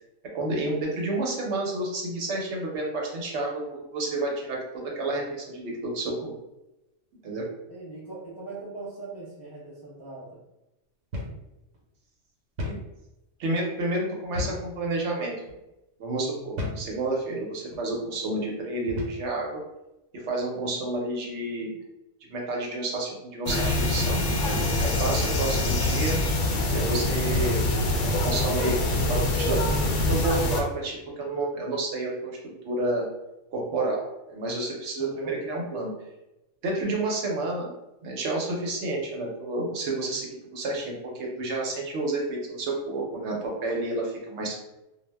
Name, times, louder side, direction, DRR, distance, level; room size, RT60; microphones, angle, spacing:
voice 1, 0.3-6.3 7.2-7.5 12.6-12.8 13.4-15.3 16.0-19.6 20.1-21.7 22.3-24.2 24.8-26.2 26.7-27.6 27.9-28.8 29.1-33.1 33.5-34.0 34.3-35.9 36.6-37.7 38.0-44.5, right 2 dB, 70° right, -1 dB, 0.9 m, -30 dB
voice 2, 7.7-10.4 35.0-35.3, right 3 dB, 30° left, -8 dB, 0.5 m, -41 dB
sound 1, 11.1-11.4 11.7-11.8 12.6-12.9 14.4-14.7 15.4-15.6 16.6-16.9 17.7-17.9 18.9-19.3, left 2 dB, 85° right, 1.0 m, -33 dB
sound 2, 23.5-30.6, left 1 dB, 80° left, 0.9 m, -25 dB
2.3 x 2.0 x 3.3 m, 0.95 s
omnidirectional pair, 1.3 m